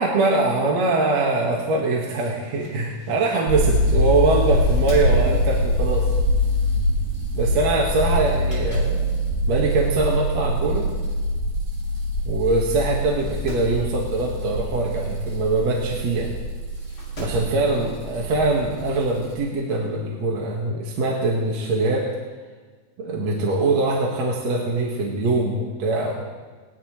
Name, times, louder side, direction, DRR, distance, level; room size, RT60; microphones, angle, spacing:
voice 1, 0.0-6.1 7.3-9.1 9.5-10.9 12.2-16.3 17.2-22.1 23.0-26.2, right 2 dB, 55° right, -2 dB, 2.5 m, -23 dB
sound 1, 2.0-4.0 4.4-6.3 6.7-6.9 8.2-9.0 9.5-9.6 10.5-10.6 10.8-10.9 11.1-11.2 12.0-12.2 12.5-12.6 13.0-13.7 15.6-15.7 16.7-17.5 18.8-18.9, right 1 dB, 25° left, 6.5 m, -32 dB
sound 2, 3.5-19.4, left 1 dB, 80° right, 7.8 m, -24 dB
21.5 x 19.0 x 3.2 m, 1.4 s
omnidirectional pair, 4.2 m